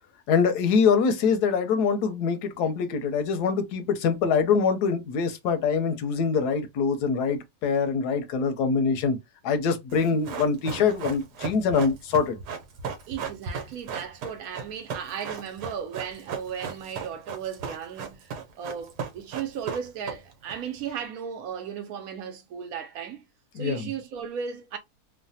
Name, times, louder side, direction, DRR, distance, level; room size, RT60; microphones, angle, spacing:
voice 1, 0.3-9.2 9.4-12.4 23.6-23.9, left 5 dB, 85° left, 1.2 m, -24 dB
Run, 9.9-20.5 20.8-20.9, right 6 dB, 90° right, 1.3 m, -36 dB
voice 2, 13.1-23.3 23.5-24.8, right 7 dB, 70° right, 1.0 m, -36 dB
3.2 x 2.1 x 2.6 m
omnidirectional pair, 1.7 m